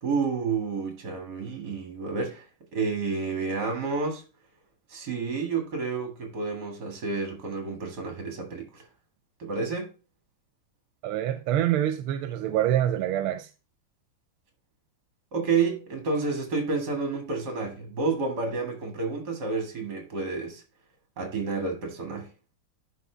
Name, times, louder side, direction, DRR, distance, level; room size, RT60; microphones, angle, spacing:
voice 1, 0.0-2.4 2.7-4.2 4.9-8.8 9.4-9.9 15.3-20.6 21.2-22.3, right 4 dB, 55° right, 2.3 m, -30 dB
voice 2, 11.0-13.5, right 11 dB, 85° right, 1.4 m, -26 dB
10.5 x 3.8 x 3.3 m
omnidirectional pair, 2.3 m